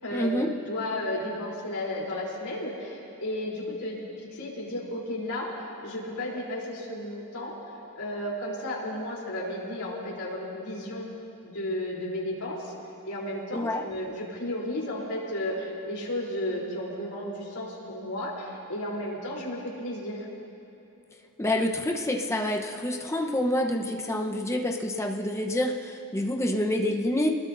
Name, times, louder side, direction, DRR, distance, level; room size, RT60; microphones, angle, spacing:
voice 1, 0.1-0.5 13.5-13.8 21.4-27.3, left 1 dB, 15° left, 1 dB, 1.0 m, -27 dB
voice 2, 0.6-4.0 4.3-7.5 8.0-11.1 11.4-12.7 13.1-20.3, left 1 dB, 85° left, -4 dB, 3.8 m, -33 dB
26.0 x 20.0 x 2.7 m, 2.9 s
head